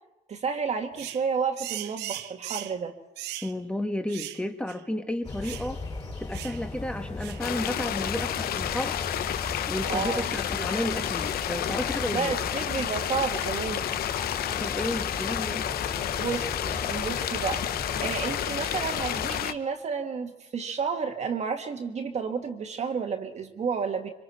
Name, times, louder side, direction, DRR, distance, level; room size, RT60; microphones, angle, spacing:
voice 1, 0.3-3.0 9.9-10.3 12.1-13.8 16.1-17.6 18.0-24.1, right 6 dB, 40° right, 4 dB, 1.8 m, -31 dB
sound 1, 1.0-1.2 1.6-2.8 3.2-3.5 4.1-4.4 4.7-4.8 5.4-5.7 6.3-6.6 7.2-7.5, right 14 dB, 80° right, 0.7 m, -38 dB
voice 2, 3.4-5.8 6.2-9.0 9.7-12.3 14.6-15.7, left 1 dB, 5° left, 6 dB, 1.5 m, -32 dB
sound 2, 5.2-19.4, left 3 dB, 30° left, 5.5 m, -37 dB
sound 3, 7.4-19.5, left 11 dB, 65° left, 0.8 m, -30 dB
25.5 x 25.0 x 4.4 m, 0.97 s
cardioid pair, 110°, 17 cm